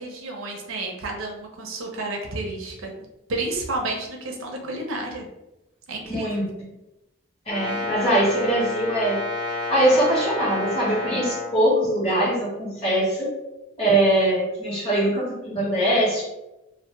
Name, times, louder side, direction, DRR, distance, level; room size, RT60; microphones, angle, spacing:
voice 1, 0.0-2.9 3.3-5.3 5.9-6.5, right 2 dB, 90° right, 1 dB, 0.6 m, -31 dB
voice 2, 6.1-6.5 7.5-9.2 9.7-13.3 13.8-16.2, right 1 dB, 30° left, -7 dB, 1.2 m, -22 dB
Brass instrument, 7.5-11.5, left 2 dB, 20° right, 0.7 m, -29 dB
2.5 x 2.0 x 3.2 m, 0.96 s
head